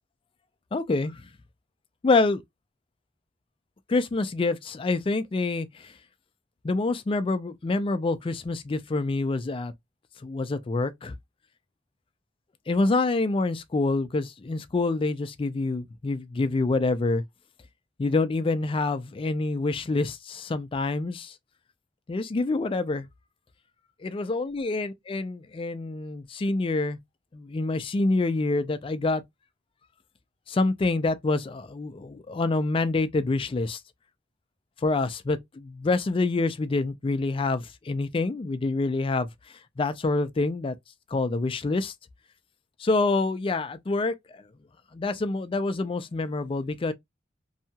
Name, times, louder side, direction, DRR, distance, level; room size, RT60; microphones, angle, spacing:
voice 1, 0.7-1.2 2.0-2.4 3.9-5.9 6.6-9.7 10.2-11.1 12.7-17.2 18.0-21.3 22.1-23.1 24.0-27.0 27.3-29.2 30.5-33.8 34.8-39.3 39.8-40.8 41.1-41.9 42.8-44.4 44.9-46.9, left 3 dB, 30° left, 0.3 m, -26 dB
2.7 x 2.2 x 2.7 m
head